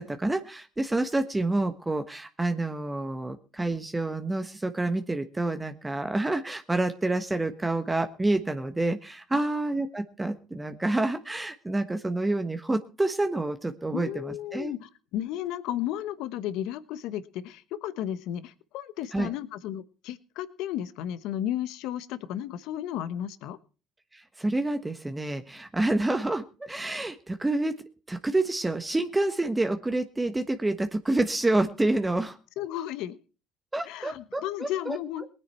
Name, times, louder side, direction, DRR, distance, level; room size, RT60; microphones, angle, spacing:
voice 1, 0.0-14.7 19.1-19.3 24.1-27.7 28.1-32.4 33.7-35.0, right 2 dB, 15° right, 8 dB, 1.3 m, -28 dB
voice 2, 13.9-23.6 32.6-33.2 33.9-35.3, left 11 dB, 75° left, 15 dB, 1.0 m, -34 dB
19.0 x 9.8 x 4.4 m, 0.35 s
supercardioid pair, 90°, 0 cm